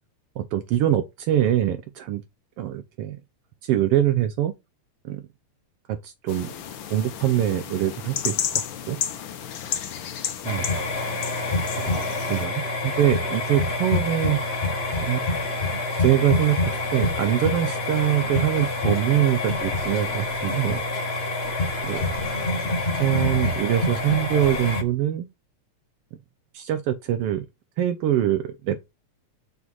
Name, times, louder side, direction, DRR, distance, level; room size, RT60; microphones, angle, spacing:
voice 1, 0.4-2.2 2.6-3.2 3.6-4.5 5.0-5.2 5.9-6.5 6.9-9.0 10.4-10.6 11.8-14.4 15.0-15.4 16.0-20.8 21.8-22.1 22.9-25.3 26.5-27.5 27.8-28.9, right 12 dB, 80° right, 1.3 m, -24 dB
sound 1, 6.3-12.5, left 9 dB, 75° left, 1.1 m, -32 dB
sound 2, 10.4-24.8, left 2 dB, 50° left, 0.7 m, -26 dB
6.4 x 4.5 x 5.4 m
omnidirectional pair, 3.4 m